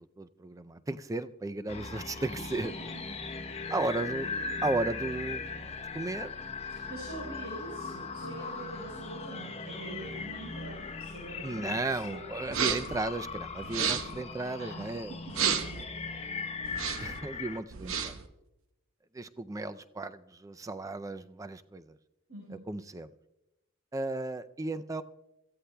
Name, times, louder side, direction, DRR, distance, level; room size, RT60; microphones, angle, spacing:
voice 1, 0.0-2.7 3.7-4.3 4.6-5.7 5.9-6.4 11.4-15.4 17.0-18.2 19.1-22.0 22.5-23.1 23.9-25.0, right 2 dB, 15° right, 12 dB, 0.4 m, -35 dB
Magic Xeno Swamp, 1.7-17.6, left 4 dB, 30° left, 0.9 m, -39 dB
voice 2, 6.7-12.2 14.6-15.6 22.3-22.7, right 2 dB, 90° right, -3 dB, 4.7 m, -44 dB
sound 1, 12.5-13.0 13.6-14.2 15.3-15.8 16.6-17.2 17.7-18.3, right 7 dB, 65° right, 0.9 m, -31 dB
26.5 x 14.5 x 2.2 m, 0.97 s
head